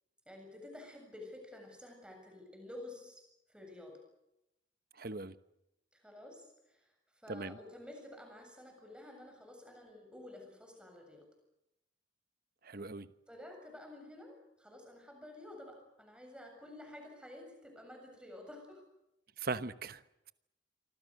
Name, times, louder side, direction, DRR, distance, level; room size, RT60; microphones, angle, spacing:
voice 1, 0.3-3.2 3.5-4.0 5.9-11.2 13.3-18.8, left 1 dB, 5° right, 3 dB, 7.3 m, -51 dB
voice 2, 5.0-5.4 7.3-7.6 12.6-13.1 19.4-20.0, right 3 dB, 50° right, 12 dB, 1.0 m, -39 dB
27.5 x 25.0 x 6.6 m, 0.88 s
head